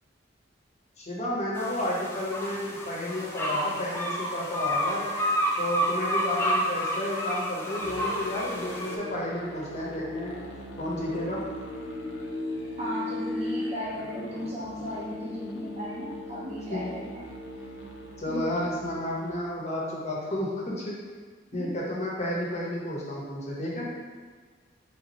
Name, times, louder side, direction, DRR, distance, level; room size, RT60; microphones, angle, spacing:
voice 1, 1.0-5.1 5.6-10.4 10.8-11.4 16.7-16.9 18.2-21.0 21.5-23.9, left 1 dB, 40° left, -4 dB, 0.9 m, -31 dB
sound 1, 1.5-9.0, equal, 15° left, 0.5 m, -30 dB
Musical instrument, 7.8-19.4, left 1 dB, 85° left, 0.6 m, -38 dB
voice 2, 12.8-17.3 18.3-18.4 21.5-21.8, equal, 35° right, -7 dB, 0.8 m, -35 dB
3.4 x 2.9 x 4.2 m, 1.5 s
head